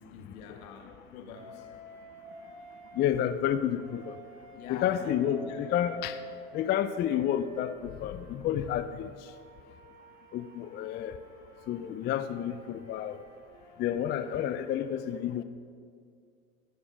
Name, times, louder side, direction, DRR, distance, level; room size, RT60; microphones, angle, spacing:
voice 1, 0.0-1.9 4.5-5.8 14.2-14.4, left 5 dB, 70° left, 3 dB, 1.9 m, -45 dB
Wind instrument woodwind instrument, 1.3-3.1 3.8-8.6 9.2-14.5, left 1 dB, 65° right, 2.5 m, -50 dB
voice 2, 2.9-4.2 4.7-6.2 6.5-9.1 10.3-11.2 11.7-13.2 13.8-15.4, left 10 dB, 25° left, 11 dB, 0.4 m, -30 dB
16.5 x 7.0 x 5.1 m, 2.2 s
hypercardioid pair, 85°, 45 cm